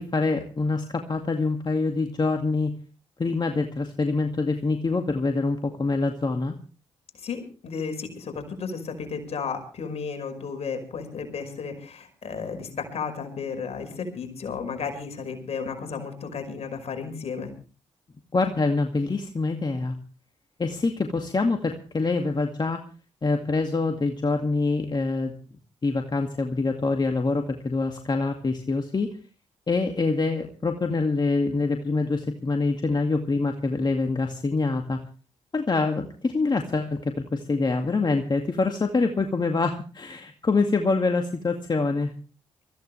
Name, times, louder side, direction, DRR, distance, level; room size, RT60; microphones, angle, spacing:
voice 1, 0.0-2.7 3.2-6.5 18.3-20.0 20.6-22.8 23.2-25.3 25.8-29.1 29.7-35.0 35.5-42.1, left 3 dB, 35° left, 4 dB, 2.1 m, -25 dB
voice 2, 7.2-17.5, left 5 dB, 55° left, 5 dB, 5.2 m, -33 dB
24.0 x 15.0 x 3.3 m, 0.36 s
hypercardioid pair, 45°, 13 cm